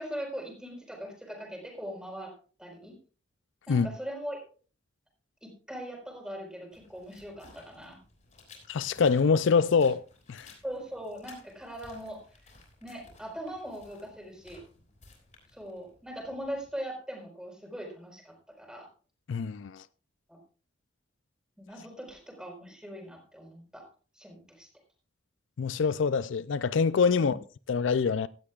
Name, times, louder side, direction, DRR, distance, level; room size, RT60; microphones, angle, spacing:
voice 1, 0.0-2.3 2.6-2.9 3.7-4.4 5.4-8.0 10.6-12.2 12.8-14.6 15.5-18.9 20.3-20.4 21.6-23.8 24.1-24.7 27.1-27.4, equal, 5° right, 4.6 m, -40 dB
sound 1, 6.7-16.7, left 3 dB, 40° left, 6.0 m, -57 dB
voice 2, 8.7-10.0 10.3-10.5 19.3-19.8 25.6-27.4 27.7-28.3, left 5 dB, 75° left, 0.4 m, -25 dB
17.0 x 13.0 x 2.4 m
head